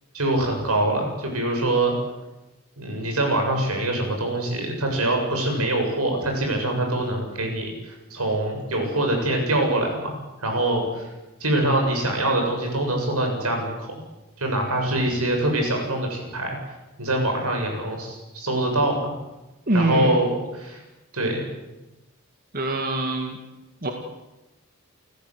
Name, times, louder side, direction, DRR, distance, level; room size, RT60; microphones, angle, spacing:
voice 1, 0.1-1.9 2.8-7.7 8.1-11.1 11.4-14.0 14.4-16.6 17.0-19.1 19.7-20.8 21.1-21.4, right 1 dB, 80° right, 2 dB, 7.4 m, -24 dB
voice 2, 19.7-20.2 22.5-23.4 23.8-23.9, right 2 dB, 40° right, 3 dB, 2.2 m, -24 dB
29.5 x 15.0 x 8.2 m, 1.0 s
head